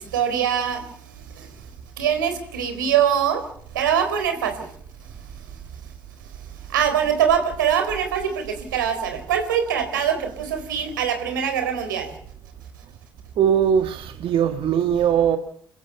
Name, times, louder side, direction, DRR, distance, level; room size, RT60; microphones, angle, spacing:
voice 1, 0.0-1.5 2.0-3.4 3.7-4.7 6.3-12.1, right 8 dB, 90° right, 4.3 m, -23 dB
voice 2, 13.4-15.4, right 8 dB, 60° right, 1.8 m, -20 dB
29.0 x 15.5 x 6.9 m
hypercardioid pair, 55°, 10 cm